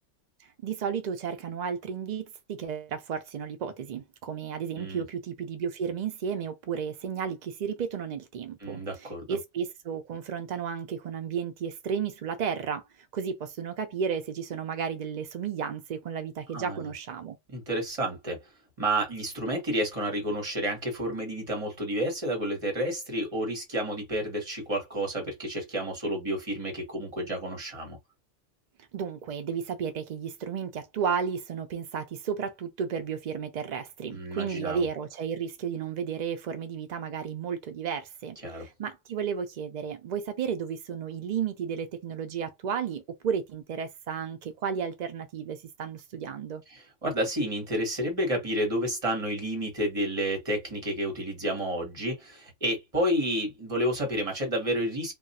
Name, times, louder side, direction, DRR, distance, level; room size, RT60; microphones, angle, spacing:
voice 1, 0.4-17.4 28.9-46.6, right 7 dB, 70° right, 0.4 m, -33 dB
voice 2, 8.6-9.4 16.5-16.9 17.5-18.4 18.8-28.0 34.1-34.9 38.4-38.7 46.7-55.1, right 1 dB, 30° right, 1.2 m, -30 dB
2.3 x 2.3 x 4.0 m
omnidirectional pair, 1.3 m